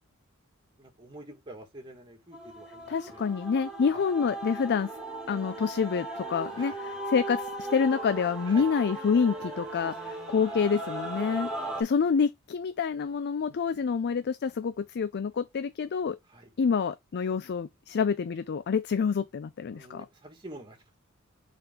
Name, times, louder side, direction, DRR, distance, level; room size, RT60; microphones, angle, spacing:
voice 1, 0.8-3.2 3.9-4.0 6.6-6.8 8.5-8.7 9.8-10.1 10.5-10.6 11.4-11.8 16.3-16.5 19.7-21.0, right 1 dB, 20° right, 2.0 m, -47 dB
Male singing / Female singing / Musical instrument, 2.3-11.8, right 2 dB, 5° right, 3.2 m, -37 dB
voice 2, 2.9-4.9 5.3-9.9 10.3-11.5 11.8-16.2 16.6-20.1, left 6 dB, 50° left, 0.4 m, -27 dB
6.8 x 4.3 x 3.6 m
head